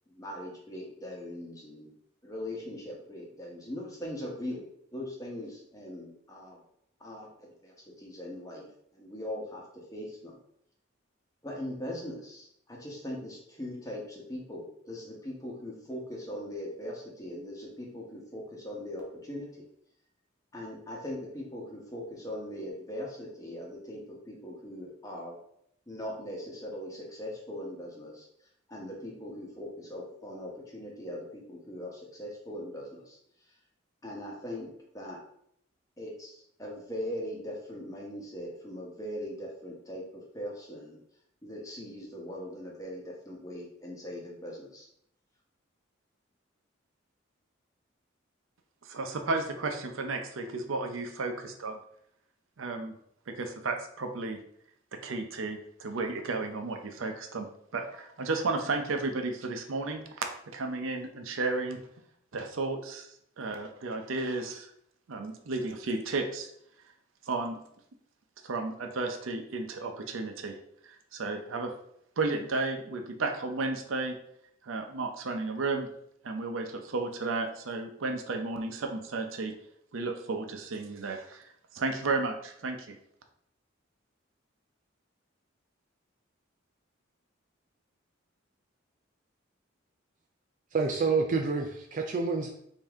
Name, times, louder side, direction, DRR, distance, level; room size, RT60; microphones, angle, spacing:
voice 1, 0.1-1.9 2.2-4.7 4.9-6.6 7.0-8.7 8.9-9.6 9.9-10.4 11.4-19.5 20.5-25.4 25.9-28.3 28.7-33.2 34.0-34.7 34.9-35.2 36.0-41.0 41.4-44.9, left 1 dB, 15° left, -2 dB, 1.0 m, -40 dB
voice 2, 48.8-51.8 52.6-52.9 53.3-54.4 54.9-61.8 62.3-63.1 63.4-64.7 65.1-66.5 67.3-67.6 68.4-70.6 71.1-71.7 72.2-74.2 74.6-75.9 76.2-79.5 79.9-83.0, right 3 dB, 85° right, 5 dB, 0.6 m, -33 dB
voice 3, 90.7-92.5, right 4 dB, 40° right, 3 dB, 0.3 m, -28 dB
5.3 x 2.7 x 3.5 m, 0.71 s
head